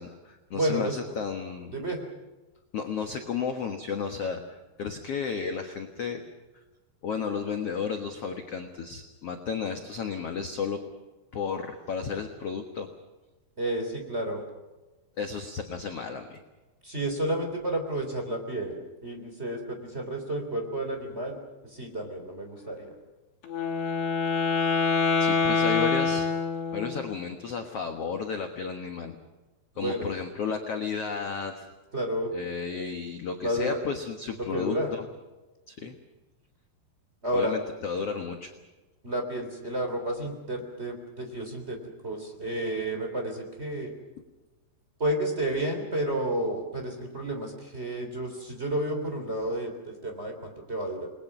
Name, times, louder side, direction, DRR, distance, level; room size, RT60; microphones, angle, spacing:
voice 1, 0.0-1.8 2.7-6.2 7.0-10.8 11.3-12.9 15.2-16.4 25.2-26.3 26.7-29.1 29.8-31.6 32.3-35.0 35.7-35.9 37.3-38.5, left 6 dB, 60° left, 4 dB, 1.6 m, -33 dB
voice 2, 0.5-1.0 1.7-2.0 13.6-14.4 16.8-22.9 29.7-30.1 31.9-32.3 33.4-33.8 34.4-34.9 37.2-37.5 39.0-43.9 45.0-51.1, right 1 dB, 15° right, 4 dB, 3.1 m, -31 dB
Wind instrument woodwind instrument, 23.4-27.1, left 5 dB, 85° left, 5.0 m, -25 dB
29.5 x 21.0 x 6.1 m, 1.2 s
omnidirectional pair, 4.9 m